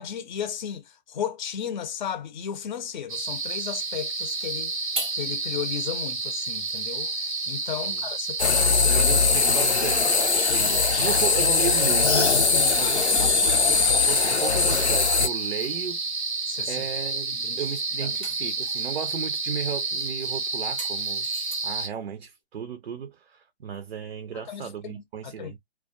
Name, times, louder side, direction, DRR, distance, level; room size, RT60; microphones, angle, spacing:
voice 1, 0.0-4.8 5.1-9.0 12.5-12.8 16.5-16.9 17.3-17.6 18.0-18.2 24.3-24.9 25.2-25.5, left 8 dB, 45° left, 0.6 m, -35 dB
sound 1, 3.1-21.9, right 3 dB, 90° right, 0.9 m, -30 dB
sound 2, 3.9-5.3 5.8-5.9 6.4-7.7 9.2-10.4 12.0-13.2 14.4-15.8 17.2-17.5 17.8-19.1 19.9-21.9, right 2 dB, 10° right, 0.4 m, -43 dB
sound 3, 8.4-15.3, left 5 dB, 90° left, 0.6 m, -21 dB
voice 2, 8.8-13.4 13.7-16.0 16.7-21.3 21.6-25.6, right 7 dB, 65° right, 0.5 m, -34 dB
2.2 x 2.2 x 2.5 m
figure-of-eight pair, 125°, 33 cm